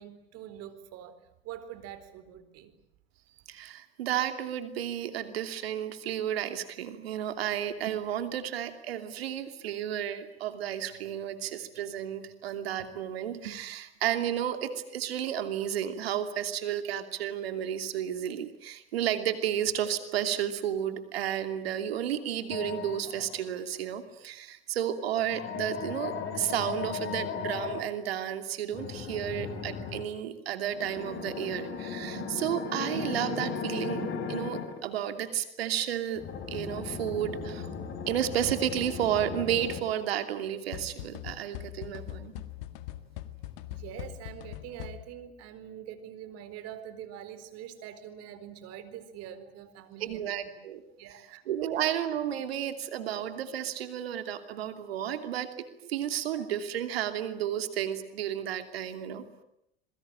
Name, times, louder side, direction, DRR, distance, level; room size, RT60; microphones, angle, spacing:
voice 1, 0.0-2.7 43.7-50.5 51.0-51.5, right 10 dB, 55° right, 13 dB, 4.2 m, -44 dB
voice 2, 3.5-37.7 38.1-42.3 50.0-50.8 51.5-55.5 55.8-59.2, right 10 dB, 80° right, 8 dB, 2.9 m, -32 dB
sound 1, 22.5-23.4 25.2-27.8 28.7-30.1 30.7-34.8 36.2-39.8, left 6 dB, 40° left, 5.4 m, -36 dB
sound 2, 40.7-45.3, left 14 dB, 65° left, 1.9 m, -42 dB
27.0 x 22.5 x 8.8 m, 0.79 s
hypercardioid pair, 90°, 30 cm